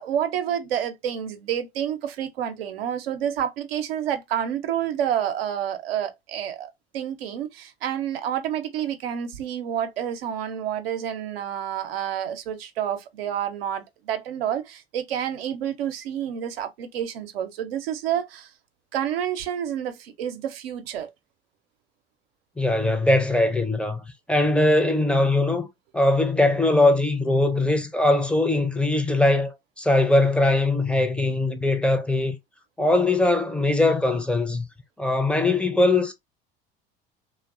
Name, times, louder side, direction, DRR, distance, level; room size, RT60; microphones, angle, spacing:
voice 1, 0.0-18.5 18.9-21.1, right 9 dB, 80° right, 0.5 m, -29 dB
voice 2, 22.6-25.7 25.9-32.4 32.8-34.7 35.0-36.1, left 2 dB, 5° left, 0.5 m, -21 dB
2.5 x 2.1 x 2.3 m
hypercardioid pair, 70°, 30 cm